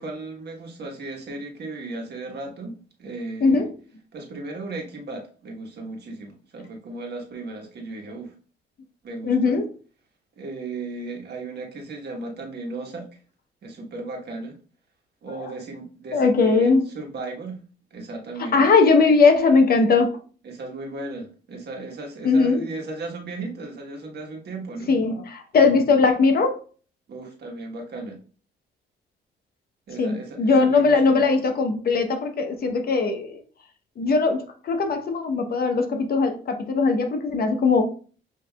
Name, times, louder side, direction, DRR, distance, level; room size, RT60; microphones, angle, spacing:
voice 1, 0.0-3.7 4.1-8.3 9.0-9.6 10.4-13.1 13.6-14.6 15.2-17.6 17.9-18.7 20.4-24.9 27.1-28.2 29.9-31.2, right 2 dB, 55° right, 1.3 m, -35 dB
voice 2, 9.2-9.7 15.3-15.5 16.1-16.8 18.4-20.1 22.2-22.6 24.9-26.6 30.0-33.3 34.0-37.8, left 4 dB, 50° left, 0.9 m, -20 dB
7.2 x 2.8 x 2.3 m
cardioid pair, 90°, 20 cm